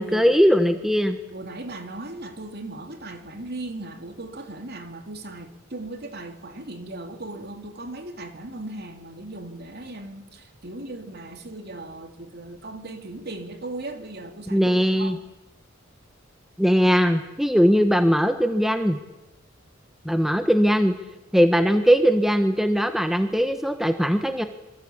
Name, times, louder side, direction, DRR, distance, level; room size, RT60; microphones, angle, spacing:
voice 1, 0.0-1.2 14.5-15.2 16.6-19.0 20.0-20.9 21.3-24.4, equal, ahead, 1.3 m, -20 dB
voice 2, 1.3-10.2 10.6-14.6 15.0-15.2, right 2 dB, 50° right, 3.1 m, -37 dB
27.0 x 24.5 x 8.8 m
head